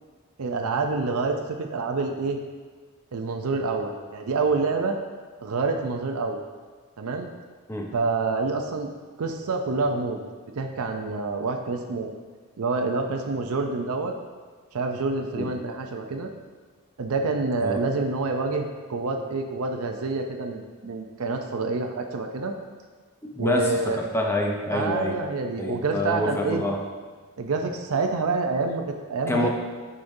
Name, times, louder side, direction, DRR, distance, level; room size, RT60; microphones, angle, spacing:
voice 1, 0.4-2.4 3.1-5.0 5.4-6.4 7.0-7.3 7.9-8.9 9.2-10.2 10.5-12.1 12.6-14.1 14.7-16.3 17.0-22.5 23.4-24.0 24.7-26.6 27.4-29.5, right 3 dB, 85° right, 4 dB, 0.5 m, -27 dB
voice 2, 23.2-25.2 25.6-26.8 29.3-29.5, left 1 dB, 10° left, 1 dB, 0.6 m, -27 dB
9.5 x 5.0 x 2.6 m, 1.5 s
head